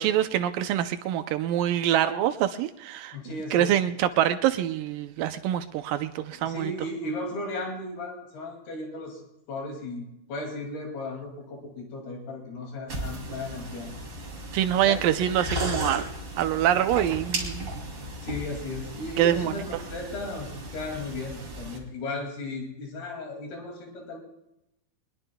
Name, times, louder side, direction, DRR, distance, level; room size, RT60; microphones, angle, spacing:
voice 1, 0.0-3.2 3.5-6.7 14.5-16.0 16.4-17.7 19.2-19.6, right 11 dB, 80° right, 9 dB, 2.0 m, -25 dB
voice 2, 3.1-3.8 6.3-9.2 9.5-13.9 14.8-15.1 18.0-24.2, left 2 dB, 75° left, 1 dB, 4.4 m, -36 dB
sound 1, 12.9-21.8, right 1 dB, 30° right, 3.0 m, -36 dB
23.5 x 20.5 x 2.3 m, 0.84 s
omnidirectional pair, 4.6 m